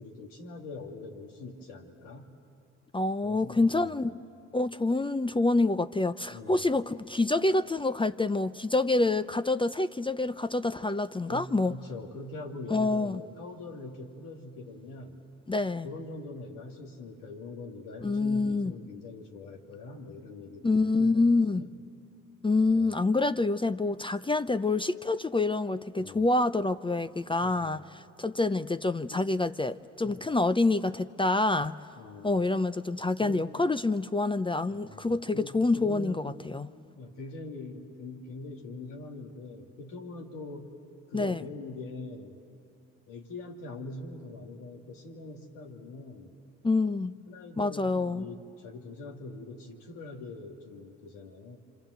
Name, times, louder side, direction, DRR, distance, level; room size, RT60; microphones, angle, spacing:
voice 1, 0.0-2.3 3.2-4.1 6.3-6.7 11.3-15.2 15.8-21.7 22.6-22.9 26.0-26.3 27.4-27.8 29.1-29.2 30.0-30.3 32.0-32.4 33.2-33.5 34.7-36.5 37.0-40.8 41.1-42.4 43.1-46.3 47.3-51.6, left 2 dB, 90° left, 2.9 m, -43 dB
voice 2, 2.9-4.2 4.5-11.7 12.7-13.2 15.5-15.9 18.0-18.7 20.6-21.6 22.4-31.8 32.2-36.7 41.1-41.4 46.6-47.1 47.6-48.3, left 2 dB, 15° left, 0.6 m, -27 dB
27.5 x 26.0 x 8.0 m
supercardioid pair, 70°, 32 cm